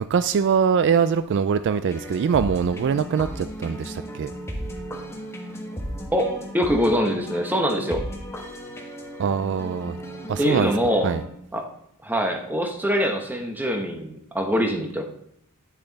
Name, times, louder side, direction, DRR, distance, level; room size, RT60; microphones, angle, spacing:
voice 1, 0.0-4.3 9.2-10.0 10.3-10.7 11.0-11.2, right 6 dB, 55° right, 0.3 m, -23 dB
sound 1, 1.9-11.3, equal, 10° left, 1.3 m, -35 dB
voice 2, 6.1-8.0 10.4-11.1 11.5-11.6 12.0-15.0, equal, 10° right, 1.1 m, -23 dB
10.0 x 6.6 x 4.0 m
head